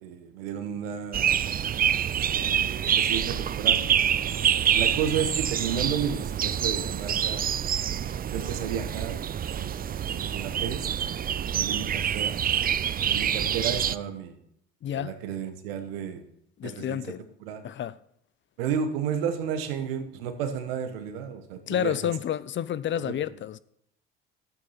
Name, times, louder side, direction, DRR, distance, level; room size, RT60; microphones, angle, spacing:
voice 1, 0.0-1.5 2.3-3.8 4.7-7.5 8.0-9.2 9.6-10.9 11.3-12.3 13.1-14.4 14.9-16.3 16.6-17.0 17.4-17.6 18.6-22.1 23.0-23.2, right 7 dB, 85° right, 1.3 m, -32 dB
sound 1, 1.1-14.0, right 9 dB, 30° right, 0.5 m, -26 dB
voice 2, 14.8-15.2 16.6-17.2 17.6-18.0 21.7-23.6, left 10 dB, 40° left, 0.6 m, -30 dB
12.5 x 8.7 x 4.3 m
hypercardioid pair, 65°, 29 cm